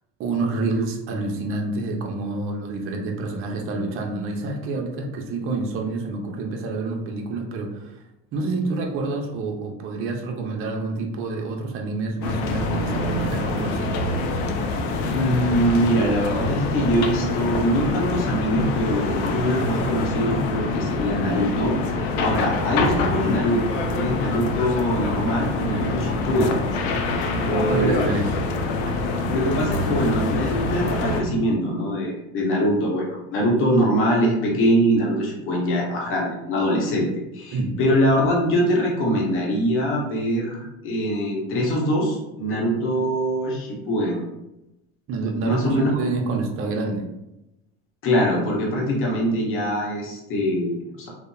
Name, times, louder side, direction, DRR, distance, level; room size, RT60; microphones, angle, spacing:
voice 1, 0.2-8.0 8.3-14.0 27.3-28.4 37.5-37.7 45.1-47.1, right 3 dB, 40° right, 2 dB, 0.6 m, -28 dB
sound 1, 12.2-31.2, left 3 dB, 80° left, 0.5 m, -25 dB
voice 2, 15.1-21.8 22.2-23.7 24.0-26.6 27.4-28.2 29.3-44.2 45.4-45.9 48.0-51.1, equal, 40° left, -3 dB, 0.8 m, -23 dB
2.8 x 2.0 x 2.3 m, 0.91 s
supercardioid pair, 105°, 32 cm